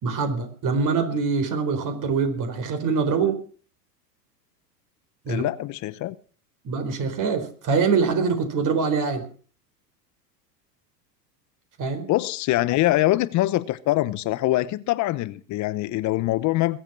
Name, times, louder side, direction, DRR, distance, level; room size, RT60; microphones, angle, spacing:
voice 1, 0.0-3.4 5.2-5.4 6.6-9.2 11.8-12.1, right 5 dB, 40° right, 7 dB, 4.3 m, -24 dB
voice 2, 5.3-6.2 12.1-16.8, left 16 dB, 35° left, 17 dB, 0.9 m, -23 dB
21.5 x 8.1 x 6.0 m, 0.42 s
hypercardioid pair, 100°, 49 cm